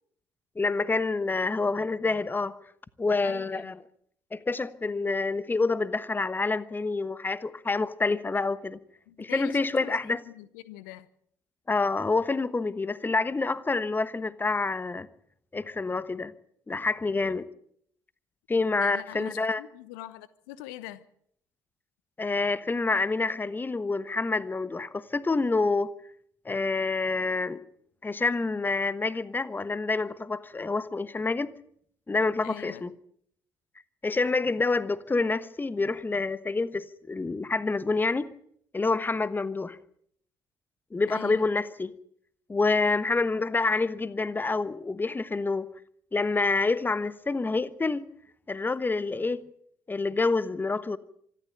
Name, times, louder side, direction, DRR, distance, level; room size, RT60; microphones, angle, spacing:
voice 1, 0.5-2.6 3.0-3.8 4.3-8.8 9.2-10.2 11.7-15.1 15.5-16.3 16.7-17.5 18.5-19.6 22.2-25.9 26.4-27.6 28.0-31.5 32.1-32.9 34.0-38.3 38.7-39.8 40.9-41.9 42.5-45.7 46.1-48.0 48.5-49.4 49.9-51.0, left 3 dB, 20° left, 1.2 m, -27 dB
voice 2, 3.2-3.7 9.1-9.9 10.3-11.1 18.8-21.0 32.4-32.9 41.1-41.5, left 15 dB, 65° left, 0.9 m, -43 dB
25.5 x 12.5 x 9.1 m
figure-of-eight pair, 50°, 11 cm